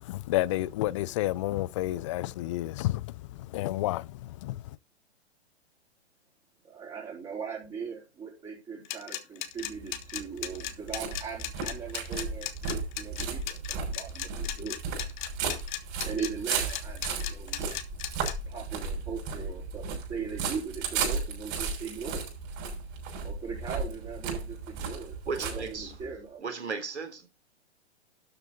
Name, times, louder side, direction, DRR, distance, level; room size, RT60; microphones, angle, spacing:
voice 1, 0.1-3.0 3.5-4.0 4.4-4.5, left 16 dB, 30° left, 0.4 m, -29 dB
voice 2, 6.6-14.8 16.0-17.7 18.5-22.3 23.2-26.4, right 6 dB, 20° right, 4.5 m, -39 dB
sound 1, 8.8-18.3, left 13 dB, 45° left, 1.9 m, -36 dB
sound 2, 9.6-26.2, right 5 dB, 35° right, 6.5 m, -35 dB
voice 3, 25.3-25.9 26.4-27.3, right 4 dB, 80° right, 3.7 m, -35 dB
12.5 x 7.8 x 3.9 m
figure-of-eight pair, 120°, 33 cm